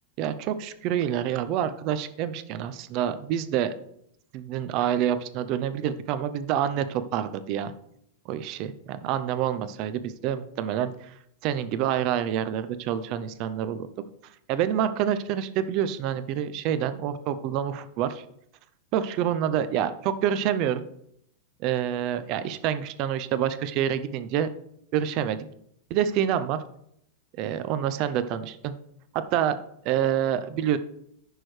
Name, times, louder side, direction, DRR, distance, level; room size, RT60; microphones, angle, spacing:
voice 1, 0.2-3.7 4.3-7.7 8.3-11.2 11.4-13.8 14.2-18.2 18.9-20.8 21.6-24.5 24.9-25.4 25.9-26.6 27.4-28.7 29.1-29.6 29.8-30.8, right 10 dB, 35° right, 11 dB, 0.5 m, -27 dB
14.5 x 6.3 x 3.2 m, 0.74 s
supercardioid pair, 175°, 0 cm